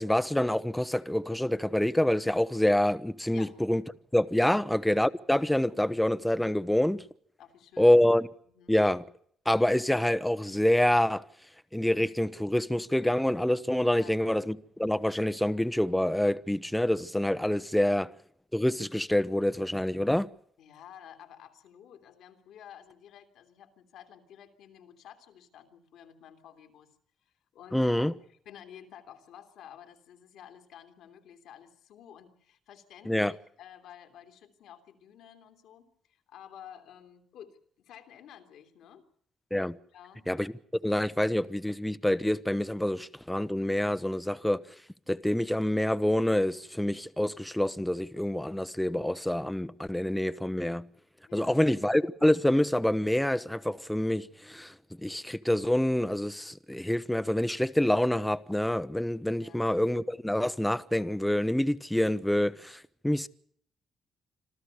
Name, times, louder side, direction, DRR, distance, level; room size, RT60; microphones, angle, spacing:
voice 1, 0.0-3.8 4.1-7.0 7.8-8.3 8.7-9.0 9.5-11.2 11.7-18.1 18.5-20.3 27.7-28.1 33.1-33.3 39.5-39.8 40.3-40.5 40.8-44.6 45.1-50.8 51.3-54.7 55.0-63.3, left 1 dB, 5° left, 0.9 m, -26 dB
voice 2, 7.4-8.1 8.4-8.8 13.9-14.2 17.7-17.9 20.6-26.9 27.2-39.0 39.9-40.3 51.3-51.7 59.4-59.7, left 9 dB, 80° left, 2.9 m, -52 dB
26.5 x 14.0 x 8.2 m
cardioid pair, 90°, 0 cm